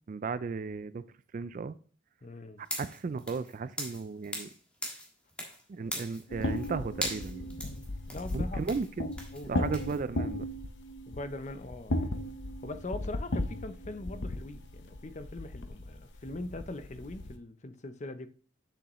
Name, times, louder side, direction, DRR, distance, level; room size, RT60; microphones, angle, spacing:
voice 1, 0.1-1.0 1.3-1.8 2.8-4.5 5.7-7.5 8.3-9.2 9.5-10.5, right 4 dB, 40° right, 0.3 m, -35 dB
voice 2, 2.2-2.6 8.1-8.6 9.3-9.7 11.1-12.4 12.6-18.3, left 2 dB, 35° left, 0.6 m, -41 dB
sound 1, 2.6-4.6 4.8-5.6 5.9-6.7 7.0-10.0, equal, 5° left, 1.5 m, -39 dB
sound 2, 6.3-17.4, left 1 dB, 60° left, 0.8 m, -36 dB
7.8 x 6.9 x 3.0 m
head